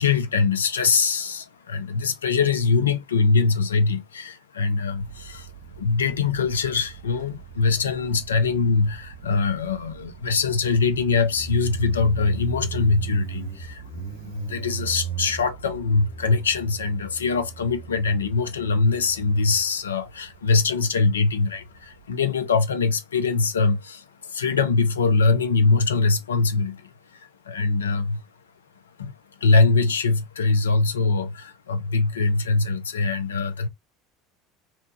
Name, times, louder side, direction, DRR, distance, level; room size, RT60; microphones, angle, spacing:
voice 1, 0.0-28.2 29.0-29.1 29.4-33.7, left 4 dB, 80° left, 0.4 m, -23 dB
Motorcycle, 4.9-22.1, right 6 dB, 65° right, 0.7 m, -38 dB
2.8 x 2.2 x 2.8 m
figure-of-eight pair, 70°, 0 cm